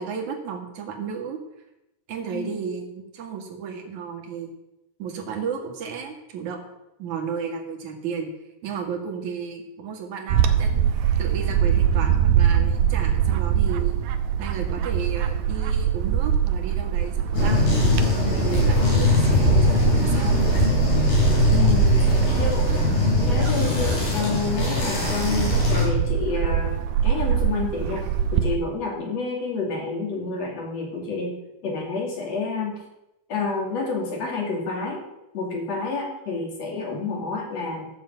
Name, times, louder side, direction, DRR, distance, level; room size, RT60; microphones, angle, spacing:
voice 1, 0.0-1.4 2.1-4.5 5.0-6.6 7.0-8.3 8.6-10.8 11.2-14.0 14.4-17.7 18.2-20.4 22.0-22.1 22.7-22.8, right 6 dB, 55° right, 2 dB, 3.0 m, -33 dB
Bird / Wind, 10.3-28.6, right 9 dB, 80° right, 2.6 m, -23 dB
sound 1, 17.3-25.9, left 5 dB, 75° left, 7.5 m, -22 dB
voice 2, 21.5-22.1 22.3-22.9 23.2-26.8 27.0-28.0 28.3-31.3 31.6-32.8 33.3-35.0 35.3-37.9, left 4 dB, 45° left, 0 dB, 3.4 m, -29 dB
14.0 x 6.9 x 7.9 m, 0.91 s
omnidirectional pair, 4.4 m